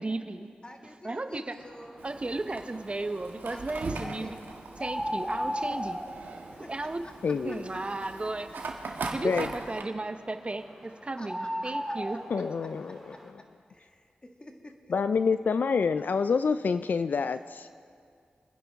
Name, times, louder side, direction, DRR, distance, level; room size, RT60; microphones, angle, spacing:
voice 1, 0.0-0.5 1.0-1.6 2.0-4.3 4.8-6.0 6.7-7.0 7.4-8.5 9.1-12.4, right 2 dB, 35° right, 8 dB, 0.9 m, -34 dB
voice 2, 0.6-2.1 3.5-4.4 5.2-5.3 5.7-8.4 8.8-8.9 11.2-13.2 13.7-14.9, left 1 dB, 30° left, 3 dB, 1.8 m, -50 dB
sound 1, 1.6-13.3, equal, 10° left, 2.7 m, -39 dB
Fire, 2.0-9.8, right 3 dB, 75° right, 1.3 m, -40 dB
voice 3, 7.2-7.6 9.2-9.5 12.3-13.0 14.9-17.9, left 5 dB, 65° left, 12 dB, 0.3 m, -27 dB
26.0 x 10.0 x 3.5 m, 2.2 s
cardioid pair, 40°, 3 cm